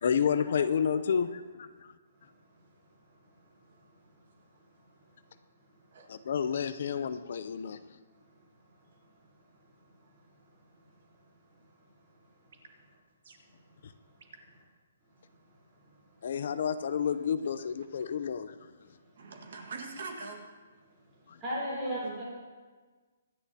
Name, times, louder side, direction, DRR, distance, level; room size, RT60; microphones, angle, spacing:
voice 1, 0.0-1.9 6.1-7.8 13.8-13.9 16.2-18.7 21.3-21.4, left 7 dB, 45° left, 12 dB, 0.6 m, -30 dB
voice 2, 19.2-20.4 21.7-22.2, right 4 dB, 50° right, 3 dB, 1.7 m, -41 dB
voice 3, 21.4-22.2, left 1 dB, 15° right, -7 dB, 4.0 m, -35 dB
25.5 x 10.5 x 2.8 m, 1.4 s
hypercardioid pair, 180°, 0 cm